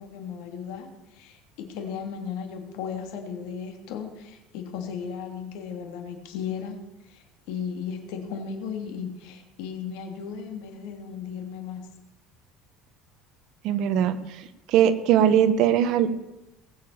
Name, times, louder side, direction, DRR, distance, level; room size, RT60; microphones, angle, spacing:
voice 1, 0.0-6.8 7.0-11.9, left 7 dB, 75° left, 4 dB, 3.1 m, -36 dB
voice 2, 13.6-16.1, right 9 dB, 55° right, 10 dB, 1.4 m, -21 dB
20.0 x 7.3 x 7.1 m, 0.97 s
cardioid pair, 150°, 0 cm